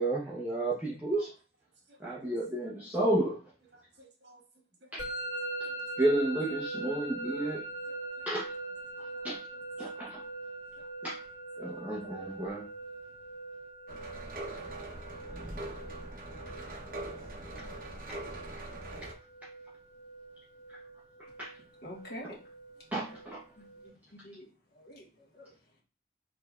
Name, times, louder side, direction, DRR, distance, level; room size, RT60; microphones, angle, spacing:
voice 1, 0.0-1.3 2.0-3.4 4.9-5.0 6.0-7.6 8.3-8.5 9.2-9.4 9.8-10.2 11.0-11.2 11.6-12.6 21.4-21.5 22.9-23.4, right 1 dB, 10° right, 0.7 m, -31 dB
voice 2, 1.9-2.4 3.7-4.4 4.8-5.0 5.7-5.8 6.6-6.7 7.9-8.4 9.0-9.6 9.9-10.0 10.8-10.9 11.6-11.9, equal, 80° right, 1.2 m, -59 dB
Musical instrument, 5.0-23.9, right 2 dB, 85° left, 1.8 m, -42 dB
sound 1, 13.9-19.1, right 1 dB, 50° right, 0.8 m, -42 dB
voice 3, 21.8-22.4 23.0-23.2 23.6-23.7 24.1-24.5 24.7-25.5, left 1 dB, 60° left, 1.5 m, -46 dB
4.9 x 3.1 x 2.4 m
head